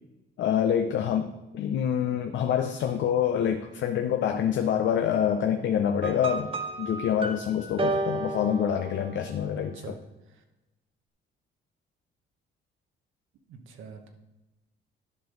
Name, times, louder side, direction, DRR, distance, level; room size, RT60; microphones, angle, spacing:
voice 1, 0.4-6.5 6.8-9.9, left 9 dB, 70° left, 6 dB, 0.6 m, -26 dB
sound 1, 6.0-9.4, right 2 dB, 25° right, 0.8 m, -32 dB
voice 2, 9.5-10.0 10.3-10.4 13.5-14.1, right 6 dB, 85° right, 5 dB, 1.1 m, -45 dB
11.5 x 5.1 x 3.9 m, 1.0 s
cardioid pair, 90°, 20 cm